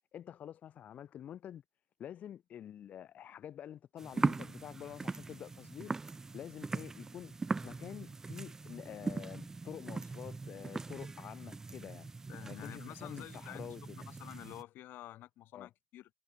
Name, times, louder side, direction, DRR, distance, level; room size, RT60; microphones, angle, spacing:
voice 1, 0.1-1.6 2.0-5.9 6.3-12.1 12.5-14.1 15.5-15.7, left 10 dB, 40° left, 6.3 m, -48 dB
sound 1, 4.0-14.6, right 3 dB, 15° right, 0.3 m, -40 dB
voice 2, 12.3-16.1, left 14 dB, 60° left, 4.4 m, -50 dB
cardioid pair, 170°, 4 cm